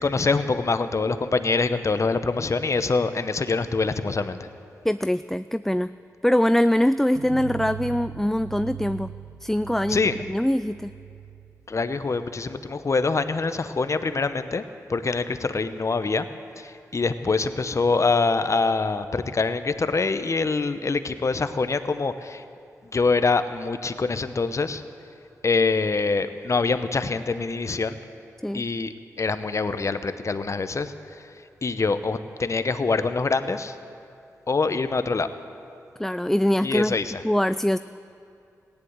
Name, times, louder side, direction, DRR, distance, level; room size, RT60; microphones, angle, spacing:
voice 1, 0.0-4.5 9.9-10.2 11.7-14.6 14.9-16.2 16.6-22.4 22.9-24.8 25.4-28.0 28.5-30.9 31.6-33.7 34.5-35.3 36.6-37.2, left 4 dB, 50° left, 10 dB, 0.8 m, -24 dB
voice 2, 4.8-5.9 6.2-9.1 9.4-10.0 10.3-10.9 28.4-28.7 36.0-37.0 37.2-37.8, left 1 dB, 5° left, 13 dB, 0.3 m, -23 dB
sound 1, 7.1-12.7, right 10 dB, 60° right, 1.3 m, -40 dB
16.0 x 10.5 x 8.0 m, 2.5 s
cardioid pair, 40°, 7 cm